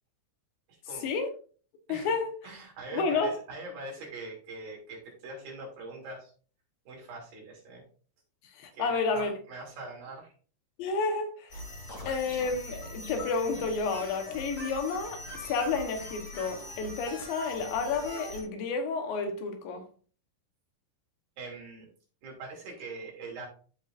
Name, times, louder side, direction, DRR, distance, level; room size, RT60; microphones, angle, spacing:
voice 1, 0.7-1.1 1.9-2.1 2.4-6.3 6.9-7.8 8.7-10.3 21.4-21.9 22.2-23.5, right 3 dB, 80° right, 4.5 m, -42 dB
voice 2, 1.9-2.4 2.9-3.3 8.6-9.4 10.8-11.5 12.1-15.2 15.5-19.8, left 4 dB, 90° left, 3.0 m, -30 dB
sound 1, 11.5-18.4, left 1 dB, 25° left, 2.4 m, -42 dB
12.5 x 5.7 x 2.6 m
omnidirectional pair, 4.0 m